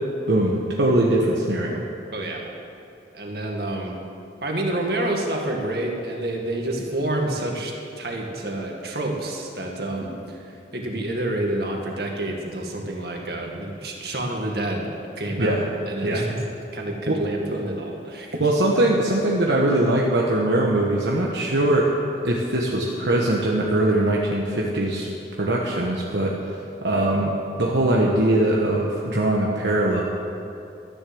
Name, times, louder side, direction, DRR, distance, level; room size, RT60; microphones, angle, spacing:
voice 1, 0.3-1.9 15.4-15.6 16.0-16.3 17.1-17.2 18.4-21.9 22.2-25.1 25.4-27.3 27.6-30.0, right 1 dB, 75° right, -2 dB, 1.3 m, -21 dB
voice 2, 2.1-2.5 3.1-4.0 4.4-14.9 15.2-15.6 15.9-16.4 16.7-18.4, right 1 dB, 60° right, 1 dB, 2.1 m, -28 dB
13.5 x 10.5 x 7.8 m, 2.6 s
head